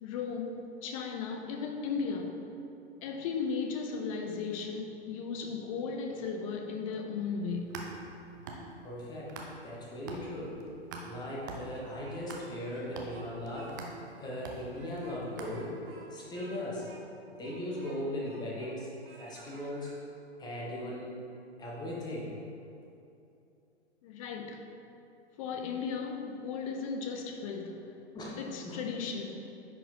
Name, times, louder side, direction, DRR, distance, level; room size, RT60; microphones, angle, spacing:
voice 1, 0.0-2.5 3.0-7.9 24.0-24.6 25.4-27.9 28.4-29.5, left 5 dB, 30° left, 4 dB, 0.6 m, -36 dB
sound 1, 7.4-9.8 10.1-16.0, right 3 dB, 20° right, 0.3 m, -45 dB
voice 2, 8.8-9.4 9.6-10.6 11.0-13.8 14.2-15.8 16.1-16.9 17.3-19.9 20.4-21.2 21.6-22.4 28.1-28.8, left 1 dB, 10° left, -4 dB, 1.1 m, -38 dB
Speech, 11.6-12.4 12.7-13.8 14.1-14.2 14.7-18.8 19.0-20.0, right 3 dB, 55° right, 1.1 m, -55 dB
9.8 x 4.3 x 2.8 m, 2.8 s
figure-of-eight pair, 110°, 34 cm